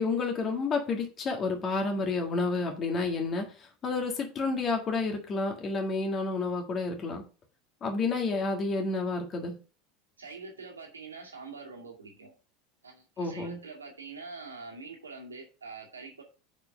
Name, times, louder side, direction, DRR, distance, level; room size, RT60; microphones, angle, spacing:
voice 1, 0.0-7.2 7.8-9.5 13.2-13.6, left 3 dB, 35° left, 1.8 m, -30 dB
voice 2, 10.2-12.3 12.8-16.2, right 4 dB, 90° right, 2.2 m, -44 dB
6.7 x 5.1 x 5.4 m
hypercardioid pair, 80°, 0 cm